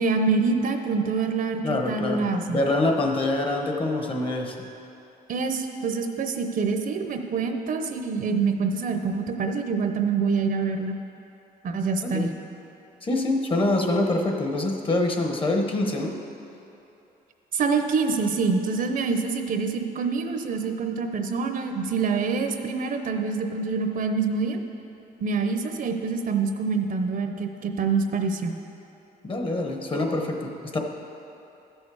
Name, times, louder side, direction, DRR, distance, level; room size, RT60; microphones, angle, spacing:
voice 1, 0.0-1.6 1.9-2.6 5.3-11.0 11.6-12.3 17.5-24.6 25.2-28.6, right 4 dB, 55° right, 5 dB, 0.8 m, -26 dB
voice 2, 1.6-4.7 12.0-12.3 13.0-16.1 29.2-30.8, left 2 dB, 30° left, 2 dB, 1.1 m, -25 dB
13.5 x 6.4 x 4.8 m, 2.9 s
cardioid pair, 120°, 17 cm